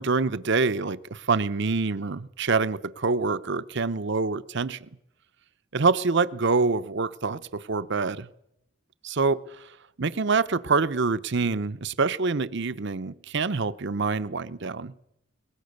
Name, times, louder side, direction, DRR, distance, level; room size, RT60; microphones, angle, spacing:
voice 1, 0.0-4.8 5.7-8.3 9.0-9.4 10.0-14.9, right 4 dB, 55° right, 0.8 m, -26 dB
22.5 x 19.5 x 6.6 m
head